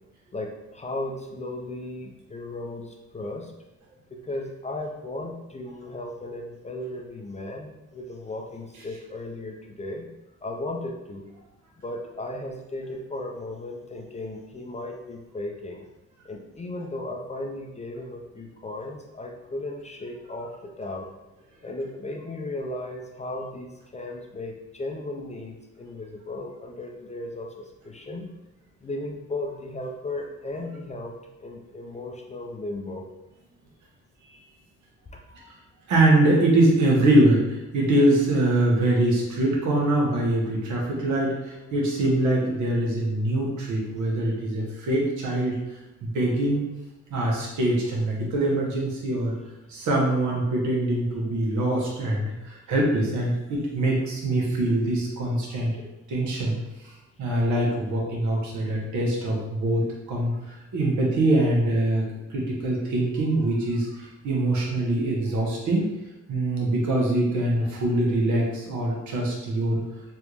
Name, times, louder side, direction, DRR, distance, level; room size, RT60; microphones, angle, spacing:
voice 1, 0.3-3.5 4.1-10.1 10.4-11.3 11.8-15.8 16.2-21.1 21.6-28.3 28.8-31.1 31.4-33.0 35.1-35.5, left 2 dB, 25° left, 1 dB, 0.4 m, -35 dB
voice 2, 35.9-46.6 47.1-49.3 49.7-55.7 56.1-56.6 56.8-56.9 57.2-59.8 60.1-62.0 62.3-65.9 66.3-69.8, right 1 dB, 75° right, -2 dB, 1.1 m, -23 dB
3.4 x 2.5 x 3.0 m, 0.97 s
cardioid pair, 90°, 30 cm